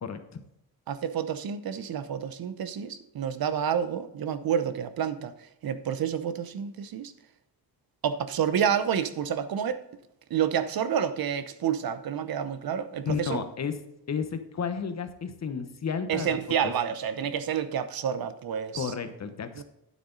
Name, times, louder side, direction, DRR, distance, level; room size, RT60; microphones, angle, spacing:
voice 1, 0.0-0.4 13.0-13.8 14.1-16.4 16.6-16.7 18.7-19.6, left 6 dB, 40° left, 1.1 m, -32 dB
voice 2, 0.9-5.3 5.6-7.1 8.0-9.8 10.3-13.4 16.1-18.9 19.6-19.7, right 8 dB, 60° right, 0.8 m, -29 dB
9.4 x 7.8 x 3.9 m
cardioid pair, 110°, 40 cm